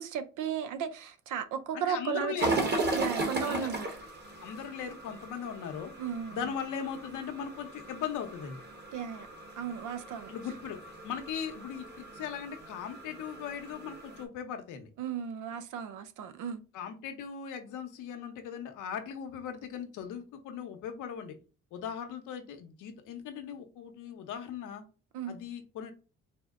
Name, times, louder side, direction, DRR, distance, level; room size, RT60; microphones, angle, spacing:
voice 1, 0.0-2.3 2.6-3.9 6.0-6.5 8.9-9.3 9.6-10.3 15.0-16.6 25.1-25.4, right 8 dB, 85° right, 0.7 m, -35 dB
voice 2, 1.7-2.7 3.4-3.7 4.4-5.9 6.3-8.6 10.3-10.8 11.0-14.9 16.7-21.4 21.7-24.8 25.3-25.9, left 8 dB, 85° left, 0.9 m, -39 dB
sound 1, 2.4-14.2, right 2 dB, 35° right, 1.2 m, -37 dB
4.4 x 2.1 x 3.6 m
cardioid pair, 90°, 30 cm